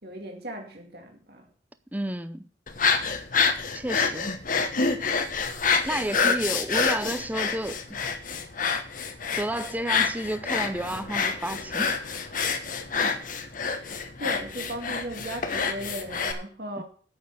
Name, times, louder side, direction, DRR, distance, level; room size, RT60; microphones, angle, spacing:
voice 1, 0.0-1.5 6.2-6.4 13.0-13.4 13.6-16.8, right 1 dB, 60° right, 2.3 m, -37 dB
voice 2, 1.9-2.5 3.7-4.3 5.8-8.2 9.3-12.0 16.8-16.9, right 1 dB, 10° right, 0.6 m, -31 dB
sound 1, 2.7-16.3, left 5 dB, 45° left, 1.2 m, -27 dB
8.8 x 6.6 x 8.1 m
head